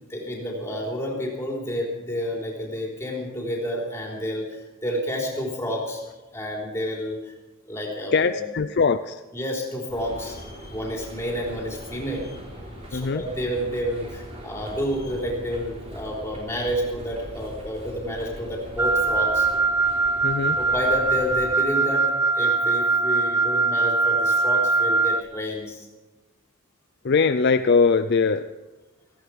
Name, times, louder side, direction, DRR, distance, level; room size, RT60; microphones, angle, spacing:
voice 1, 0.1-6.0 6.3-7.3 7.7-8.5 9.3-12.4 12.9-19.5 20.6-22.1 22.3-25.9, equal, 10° left, -2 dB, 3.6 m, -30 dB
voice 2, 8.1-9.2 12.9-13.2 20.2-20.6 27.0-28.5, left 5 dB, 50° left, 10 dB, 0.4 m, -21 dB
sound 1, 9.9-21.5, equal, 30° right, 3.5 m, -41 dB
Wind instrument woodwind instrument, 18.8-25.2, right 3 dB, 10° right, 0.5 m, -22 dB
17.0 x 15.0 x 4.8 m, 1.1 s
head